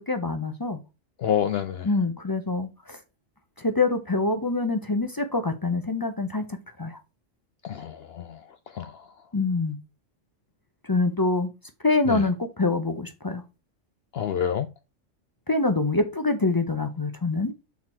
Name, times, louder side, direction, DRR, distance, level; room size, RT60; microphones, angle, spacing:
voice 1, 0.1-0.8 1.8-3.0 3.6-6.4 6.8-7.0 9.3-9.8 10.9-11.5 11.8-13.4 15.5-17.5, left 3 dB, 30° left, 0.4 m, -25 dB
voice 2, 1.2-1.9 7.6-9.1 12.1-12.3 14.1-14.7, left 9 dB, 65° left, 0.7 m, -28 dB
5.8 x 4.5 x 4.4 m
omnidirectional pair, 1.3 m